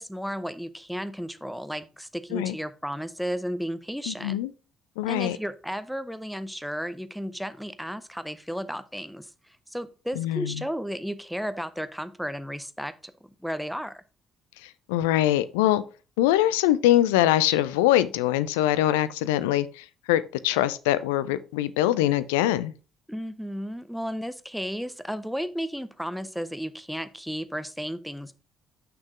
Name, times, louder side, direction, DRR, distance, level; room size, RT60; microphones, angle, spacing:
voice 1, 0.0-4.4 5.1-13.1 13.4-14.0 23.1-28.3, equal, ahead, 0.6 m, -33 dB
voice 2, 4.1-4.5 5.0-5.4 10.2-10.6 14.6-15.8 16.2-22.7, left 13 dB, 70° left, 0.3 m, -23 dB
6.2 x 5.9 x 3.6 m
figure-of-eight pair, 45°, 0 cm